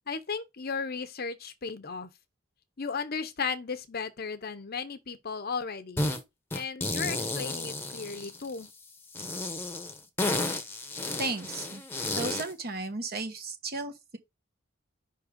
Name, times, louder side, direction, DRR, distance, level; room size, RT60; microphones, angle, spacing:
voice 1, 0.1-2.1 2.8-6.1 6.5-8.7, left 5 dB, 50° left, 0.8 m, -35 dB
sound 1, 6.0-6.2 6.5-8.6 9.1-12.5, left 2 dB, 10° left, 1.0 m, -32 dB
voice 2, 11.2-11.8 12.2-14.2, right 3 dB, 50° right, 1.2 m, -34 dB
5.4 x 3.7 x 5.1 m
head